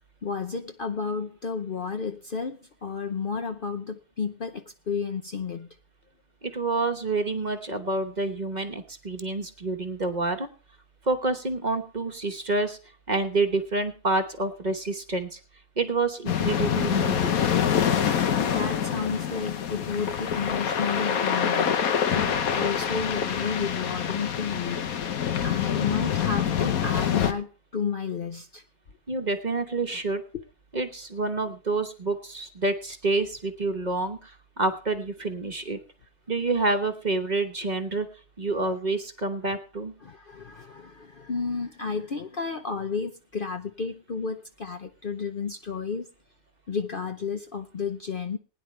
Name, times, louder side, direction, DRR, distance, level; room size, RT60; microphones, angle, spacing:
voice 1, 0.2-5.7 18.4-21.8 22.1-24.9 25.4-28.6 40.0-46.1 46.7-48.4, left 5 dB, 50° left, 7 dB, 0.8 m, -32 dB
voice 2, 6.4-10.5 11.0-12.8 13.1-15.4 15.8-17.4 29.1-30.2 30.7-35.8 36.3-38.1 38.4-39.9, right 3 dB, 35° right, 6 dB, 1.1 m, -28 dB
sound 1, 16.3-27.3, left 8 dB, 80° left, 1.4 m, -26 dB
20.5 x 10.0 x 3.2 m, 0.36 s
omnidirectional pair, 1.5 m